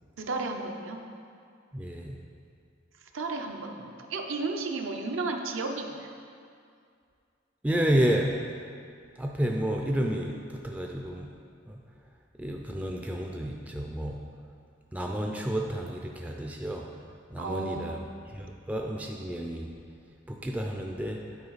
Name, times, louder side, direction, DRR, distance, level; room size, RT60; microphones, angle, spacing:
voice 1, 0.2-1.0 3.1-6.1 17.4-18.0, right 3 dB, 75° right, 3 dB, 0.7 m, -33 dB
voice 2, 1.7-2.2 7.6-8.4 9.2-11.3 11.7-11.8 12.4-14.2 14.9-16.9 17.3-18.0 18.3-19.7 20.3-21.2, right 1 dB, 10° right, 1 dB, 0.3 m, -30 dB
9.6 x 4.5 x 4.0 m, 2.3 s
head